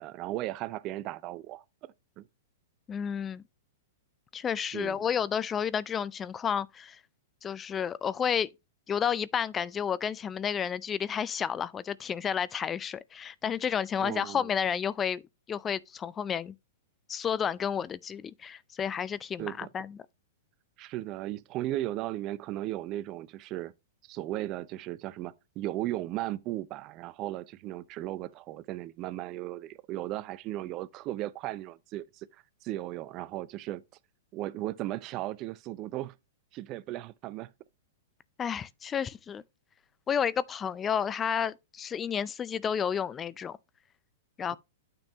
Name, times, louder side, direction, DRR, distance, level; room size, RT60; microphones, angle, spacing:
voice 1, 0.0-1.6 2.2-2.3 4.7-5.0 14.0-14.5 19.4-19.7 20.8-23.7 24.0-33.8 34.3-36.1 36.5-37.5 44.5-44.6, right 15 dB, 40° right, 0.5 m, -36 dB
voice 2, 2.9-3.4 4.3-7.0 7.4-8.5 8.9-15.2 15.5-16.5 17.1-20.0 38.4-39.4 40.1-43.6 44.4-44.6, left 7 dB, 20° left, 0.4 m, -31 dB
9.2 x 5.2 x 2.8 m
hypercardioid pair, 110°, 0 cm